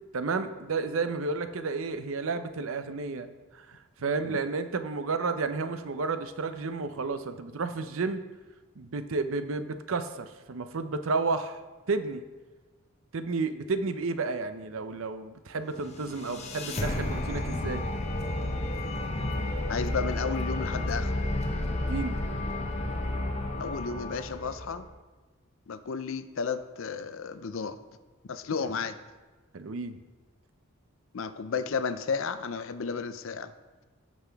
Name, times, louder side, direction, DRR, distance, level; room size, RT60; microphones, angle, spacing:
voice 1, 0.1-8.2 8.8-11.6 11.9-12.2 13.1-17.8 21.7-22.2 29.5-30.0, right 4 dB, 70° right, 10 dB, 0.6 m, -32 dB
sound 1, 15.7-24.9, left 1 dB, 30° left, 0.8 m, -32 dB
voice 2, 19.7-21.3 23.6-24.9 25.7-27.8 28.2-29.0 31.1-33.5, left 5 dB, 65° left, 12 dB, 0.5 m, -33 dB
15.5 x 5.7 x 3.5 m, 1.3 s
head